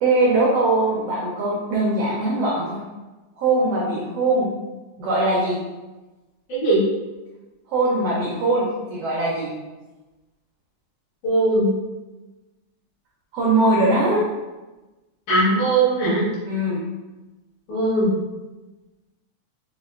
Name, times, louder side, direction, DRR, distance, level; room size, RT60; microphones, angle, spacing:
voice 1, 0.0-2.8 3.4-4.5 5.0-5.6 7.7-9.5 13.3-14.2 16.5-16.8, right 2 dB, 85° right, -4 dB, 1.3 m, -21 dB
voice 2, 6.5-6.8 11.2-11.7 14.1-14.2 15.3-16.2 17.7-18.1, right 2 dB, 70° left, -9 dB, 2.8 m, -19 dB
5.8 x 2.1 x 2.4 m, 1.1 s
omnidirectional pair, 3.6 m